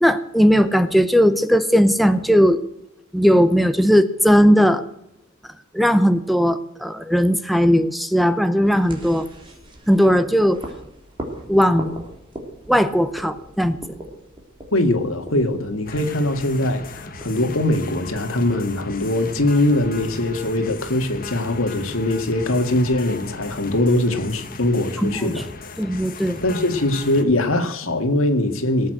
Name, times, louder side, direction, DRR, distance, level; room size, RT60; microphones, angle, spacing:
voice 1, 0.0-2.6 3.1-4.8 5.7-9.3 9.9-10.6 11.5-12.0 12.7-13.8 25.0-25.4 25.8-26.4, equal, ahead, 0.7 m, -17 dB
sound 1, 8.6-24.1, right 1 dB, 25° right, 3.2 m, -41 dB
voice 2, 14.7-25.7 26.4-28.9, left 1 dB, 80° left, 2.1 m, -21 dB
sound 2, 15.9-27.2, left 3 dB, 45° left, 1.5 m, -37 dB
19.0 x 8.4 x 7.9 m
head